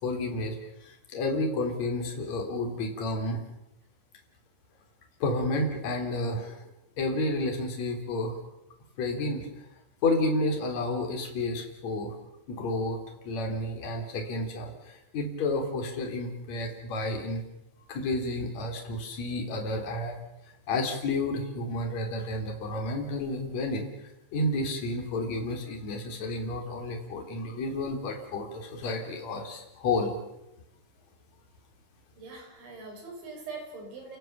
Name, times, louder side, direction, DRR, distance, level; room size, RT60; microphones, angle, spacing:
voice 1, 0.0-3.4 5.2-6.6 7.0-8.3 9.0-9.5 10.0-12.2 12.5-13.0 13.2-17.4 17.9-20.2 20.7-23.9 24.3-30.2, left 2 dB, 35° left, 2 dB, 4.5 m, -31 dB
voice 2, 32.2-34.2, right 3 dB, 65° right, 1 dB, 8.2 m, -42 dB
30.0 x 17.5 x 7.2 m, 0.90 s
omnidirectional pair, 5.7 m